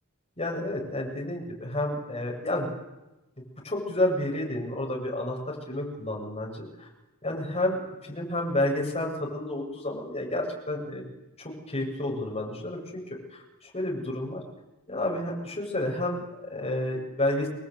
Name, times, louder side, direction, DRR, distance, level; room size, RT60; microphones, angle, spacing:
voice 1, 0.4-2.7 3.6-6.9 7.2-11.0 11.4-13.0 13.3-14.4 14.9-17.5, left 1 dB, 30° left, -1 dB, 7.8 m, -30 dB
29.5 x 21.5 x 9.5 m, 1.0 s
head